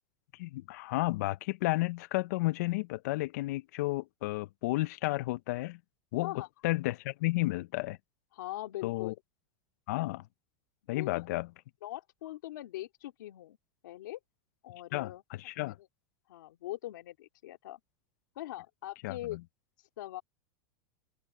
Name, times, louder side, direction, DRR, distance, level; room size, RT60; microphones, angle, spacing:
voice 1, 0.3-5.8 6.1-6.3 6.6-8.0 8.8-9.1 9.9-10.3 10.9-11.5 14.9-15.8 19.0-19.4, left 20 dB, 60° left, 0.4 m, -32 dB
voice 2, 8.3-9.1 10.9-11.1 11.8-13.6 13.8-14.2 14.6-15.2 16.3-17.8 18.3-19.4 19.8-20.2, left 15 dB, 80° left, 2.3 m, -41 dB
open air
supercardioid pair, 160°, 10 cm